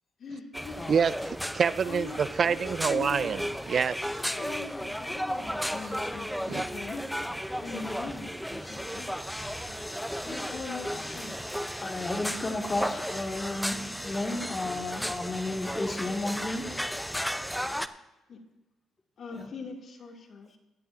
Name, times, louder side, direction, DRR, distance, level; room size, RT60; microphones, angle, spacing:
voice 1, 0.2-0.8 1.8-3.5 4.0-7.1 7.6-9.1 9.9-11.7 17.7-17.9 18.3-18.4 19.2-20.6, left 4 dB, 55° left, 2 dB, 2.2 m, -42 dB
sound 1, 0.5-17.9, equal, ahead, 0.5 m, -34 dB
voice 2, 0.9-3.4 3.7-4.0 6.5-6.7, right 6 dB, 50° right, 18 dB, 0.3 m, -26 dB
voice 3, 10.9-11.2 11.8-16.8 19.3-19.5, left 2 dB, 25° left, 2 dB, 1.8 m, -33 dB
17.0 x 13.0 x 2.5 m, 1.0 s
cardioid pair, 90°, 0 cm